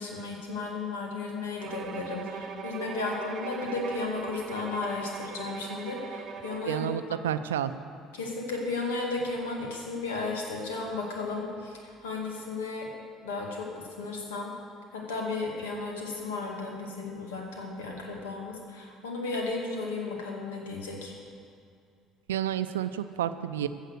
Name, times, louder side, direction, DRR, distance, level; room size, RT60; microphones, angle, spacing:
voice 1, 0.0-6.9 8.1-12.9 13.2-14.5 14.9-21.1, left 3 dB, 80° left, 0 dB, 2.2 m, -34 dB
Bowed string instrument, 1.6-7.0, right 7 dB, 50° right, 0.9 m, -40 dB
voice 2, 6.7-7.7 22.3-23.7, right 10 dB, 80° right, 12 dB, 0.5 m, -30 dB
15.0 x 7.3 x 6.5 m, 2.4 s
hypercardioid pair, 60°, 0 cm